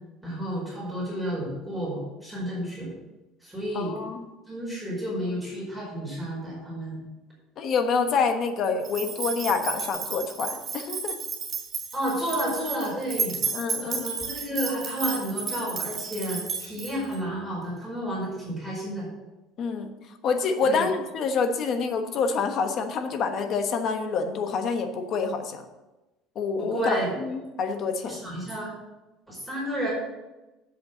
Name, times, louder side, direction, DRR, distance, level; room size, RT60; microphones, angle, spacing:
voice 1, 0.2-2.9 3.4-3.9 4.5-7.0 11.9-13.4 13.8-19.1 20.6-20.9 26.6-27.1 28.0-28.7 29.3-29.9, equal, ahead, -7 dB, 4.9 m, -31 dB
voice 2, 3.7-4.2 7.6-11.2 13.5-14.0 19.6-19.9 20.2-25.6 26.3-28.2, left 5 dB, 35° left, 6 dB, 1.1 m, -27 dB
sound 1, 8.8-17.2, right 5 dB, 20° right, 3.7 m, -32 dB
8.0 x 7.9 x 7.9 m, 1.1 s
cardioid pair, 170°, 0 cm